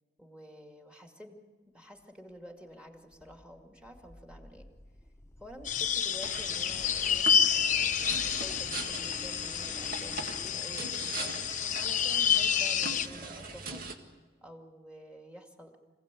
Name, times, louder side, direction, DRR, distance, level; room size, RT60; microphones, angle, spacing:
voice 1, 0.2-1.4 1.7-4.7 5.4-7.3 7.5-11.3 11.8-13.8 14.4-15.8, equal, 5° right, 4 dB, 2.3 m, -50 dB
sound 1, 2.7-10.7, left 1 dB, 15° left, 1.1 m, -51 dB
sound 2, 5.6-13.1, left 8 dB, 45° left, 0.8 m, -29 dB
sound 3, 6.2-13.9, right 3 dB, 55° right, 1.9 m, -41 dB
25.5 x 17.0 x 8.3 m, 1.5 s
head